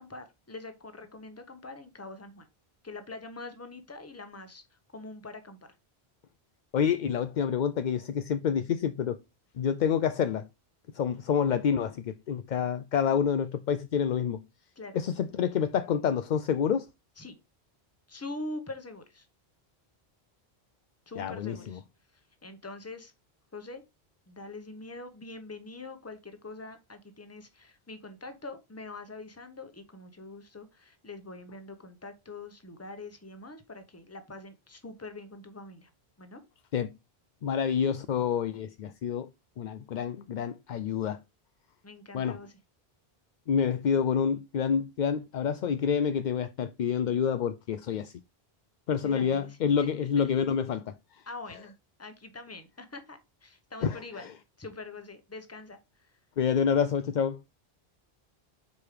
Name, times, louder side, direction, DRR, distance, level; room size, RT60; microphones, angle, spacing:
voice 1, 0.0-2.5 2.8-4.6 4.9-5.7 14.8-15.0 17.2-17.4 18.1-19.3 21.1-21.8 22.4-23.1 23.5-23.8 24.3-35.9 36.2-36.4 41.8-42.6 49.0-50.3 51.3-51.7 52.0-54.3 54.6-55.8, left 2 dB, 15° left, 0.9 m, -44 dB
voice 2, 6.7-9.2 9.6-10.5 10.9-14.4 15.0-16.9 21.2-21.8 36.7-36.9 37.4-39.3 39.6-41.2 42.1-42.4 43.5-48.1 48.9-50.8 53.8-54.3 56.4-57.4, left 7 dB, 55° left, 0.5 m, -28 dB
5.3 x 4.8 x 4.9 m
omnidirectional pair, 1.1 m